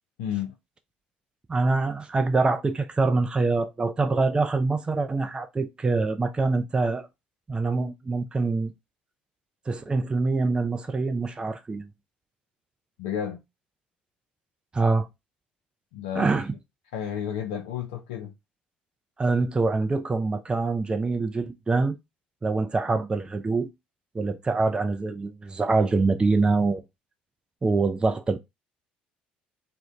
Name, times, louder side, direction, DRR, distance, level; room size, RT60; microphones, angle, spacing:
voice 1, 0.2-0.6 13.0-13.4 15.9-16.4 16.9-18.3, left 9 dB, 70° left, 0.4 m, -31 dB
voice 2, 1.5-7.1 7.5-8.7 9.7-11.9 14.7-15.1 16.1-16.5 19.2-22.0 22.4-23.7 24.1-26.8 27.6-28.4, right 3 dB, 20° right, 0.4 m, -25 dB
2.5 x 2.1 x 2.8 m
figure-of-eight pair, 55°, 5 cm